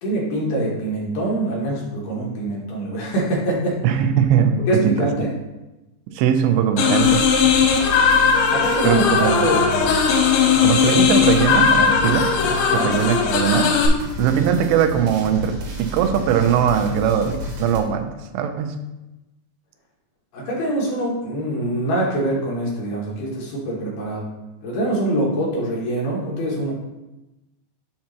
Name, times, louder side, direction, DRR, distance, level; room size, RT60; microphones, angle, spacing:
voice 1, 0.0-3.8 4.7-5.3 8.5-9.6 10.8-11.0 12.7-12.9 20.3-24.2 24.6-26.7, right 1 dB, 70° left, -4 dB, 3.0 m, -24 dB
voice 2, 3.8-5.3 6.1-7.3 8.8-9.9 10.6-13.7 14.2-18.1 18.3-18.8, right 8 dB, 85° right, 7 dB, 2.7 m, -20 dB
sound 1, 6.8-13.9, left 6 dB, 90° left, 3.2 m, -18 dB
sound 2, 7.0-17.8, left 3 dB, 70° right, 2.9 m, -32 dB
7.5 x 2.9 x 5.8 m, 1.0 s
omnidirectional pair, 5.0 m